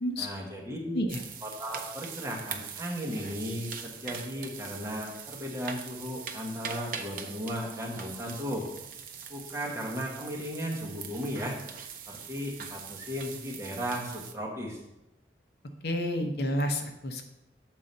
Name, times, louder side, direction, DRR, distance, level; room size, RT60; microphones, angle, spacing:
voice 1, 0.2-1.0 1.4-8.7 9.3-11.6 12.1-14.8, equal, 15° right, -3 dB, 1.2 m, -36 dB
sound 1, 1.1-14.3, right 7 dB, 50° right, 0.6 m, -42 dB
voice 2, 15.8-17.2, left 1 dB, 60° left, 5 dB, 0.7 m, -30 dB
7.4 x 3.8 x 5.3 m, 0.91 s
head